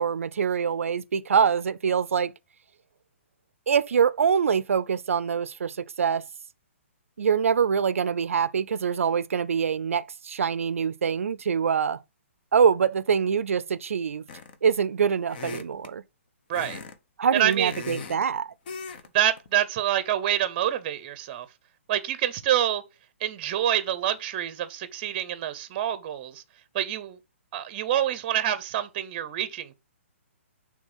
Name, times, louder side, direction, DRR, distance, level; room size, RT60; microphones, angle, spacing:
voice 1, 0.0-2.3 3.7-6.2 7.2-12.0 12.5-14.2 14.6-16.0 17.2-18.5, right 7 dB, 80° right, 0.5 m, -24 dB
sound 1, 14.3-14.7 15.3-15.9 16.5-17.0 17.3-18.2 18.7-19.1 19.4-19.6, left 5 dB, 45° left, 0.9 m, -38 dB
voice 2, 17.3-17.7 19.1-21.5 21.9-22.8 23.2-26.4 26.7-27.2 27.5-29.7, right 11 dB, 30° right, 0.7 m, -27 dB
6.4 x 3.3 x 5.4 m
hypercardioid pair, 150°, 7 cm